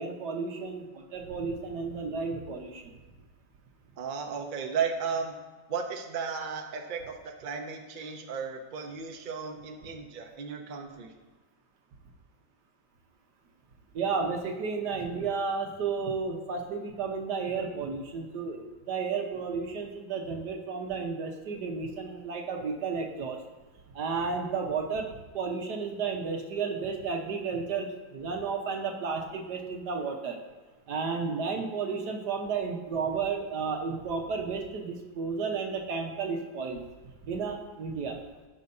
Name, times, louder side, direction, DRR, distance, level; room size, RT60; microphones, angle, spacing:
voice 1, 0.0-2.9 13.9-23.4 23.9-25.1 25.3-30.4 30.9-36.8 37.2-38.2, right 5 dB, 60° right, 2 dB, 1.5 m, -32 dB
voice 2, 4.0-5.3 5.7-11.1, right 6 dB, 90° right, 4 dB, 0.4 m, -34 dB
16.0 x 5.6 x 2.7 m, 1.3 s
omnidirectional pair, 2.1 m